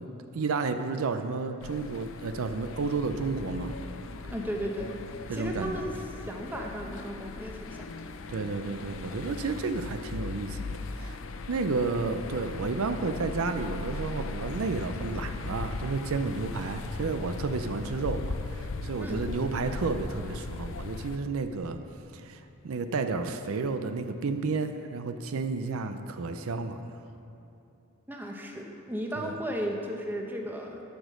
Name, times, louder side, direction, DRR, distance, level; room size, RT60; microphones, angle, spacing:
voice 1, 0.3-3.7 5.3-5.8 8.3-11.2 11.5-21.8 22.1-27.0 29.2-29.3, right 4 dB, 75° right, 8 dB, 0.5 m, -31 dB
sound 1, 1.6-21.2, left 3 dB, 65° left, 0.5 m, -38 dB
voice 2, 4.2-4.9 5.3-5.9 6.3-7.9 19.0-19.2 28.1-30.8, equal, 10° right, 1 dB, 0.8 m, -35 dB
11.5 x 5.1 x 6.3 m, 2.7 s
head